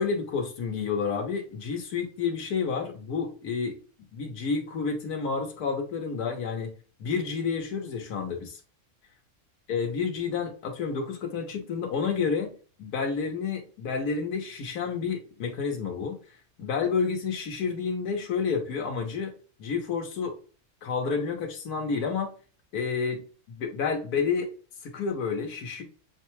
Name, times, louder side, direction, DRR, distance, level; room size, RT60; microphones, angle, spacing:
voice 1, 0.0-3.8 4.1-6.7 7.0-8.6 9.7-12.5 12.8-16.2 16.6-19.3 19.6-20.4 20.8-22.3 22.7-24.5 24.8-25.8, left 5 dB, 90° left, 1.4 m, -30 dB
6.4 x 2.2 x 3.0 m
omnidirectional pair, 1.6 m